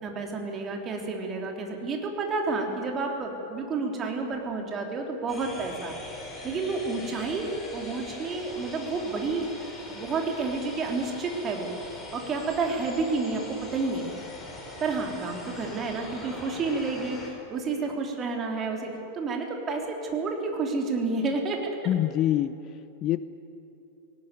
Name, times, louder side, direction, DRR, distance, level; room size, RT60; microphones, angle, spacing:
voice 1, 0.0-9.5 9.9-14.2 14.8-21.8, right 3 dB, 25° right, 2 dB, 3.4 m, -30 dB
sound 1, 5.3-17.3, left 2 dB, 10° left, 5.2 m, -42 dB
voice 2, 21.9-23.2, left 12 dB, 35° left, 14 dB, 0.6 m, -26 dB
18.5 x 18.0 x 9.4 m, 2.8 s
figure-of-eight pair, 90°, 0 cm